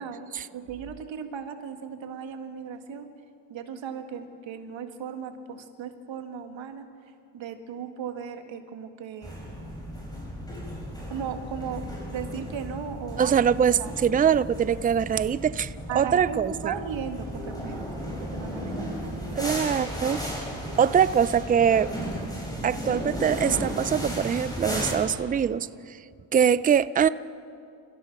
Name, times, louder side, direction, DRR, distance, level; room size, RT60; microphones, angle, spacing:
voice 1, 0.5-3.1 3.5-6.9 7.3-9.4 11.1-13.4 13.8-13.9 15.9-19.4, right 7 dB, 70° right, 7 dB, 2.0 m, -37 dB
sound 1, 9.2-24.9, equal, 10° left, 6.3 m, -35 dB
voice 2, 13.2-16.7 19.4-20.2 20.8-21.9 22.6-25.7 26.3-27.1, right 8 dB, 20° right, 17 dB, 0.4 m, -23 dB
29.0 x 15.0 x 6.0 m, 2.4 s
cardioid pair, 90°, 47 cm